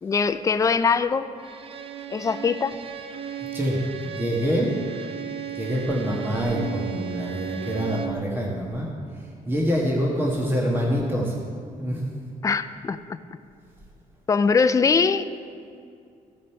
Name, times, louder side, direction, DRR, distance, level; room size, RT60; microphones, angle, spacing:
voice 1, 0.0-1.3 2.1-2.8 12.4-13.0 14.3-15.3, left 5 dB, 25° left, 11 dB, 0.3 m, -21 dB
Bowed string instrument, 1.4-8.3, right 9 dB, 40° right, 0.6 m, -35 dB
voice 2, 3.5-4.7 5.5-8.9 9.5-11.3 11.8-12.0, equal, 15° right, -2 dB, 1.3 m, -25 dB
14.5 x 5.2 x 4.4 m, 2.4 s
cardioid pair, 110°, 15 cm